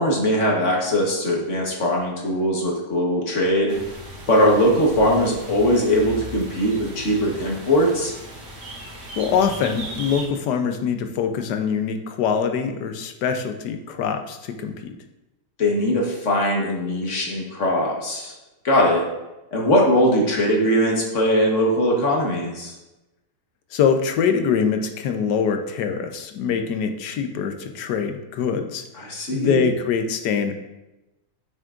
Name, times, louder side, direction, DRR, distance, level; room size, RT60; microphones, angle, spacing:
voice 1, 0.0-3.8 4.3-8.1 15.6-18.3 18.6-19.0 19.5-22.7 29.0-29.7, equal, 45° left, -1 dB, 1.5 m, -20 dB
sound 1, 3.7-10.3, right 1 dB, 75° right, 2.5 m, -37 dB
voice 2, 9.2-14.9 23.7-30.5, left 6 dB, 75° left, 6 dB, 1.3 m, -24 dB
8.9 x 6.2 x 2.5 m, 1.0 s
omnidirectional pair, 1.9 m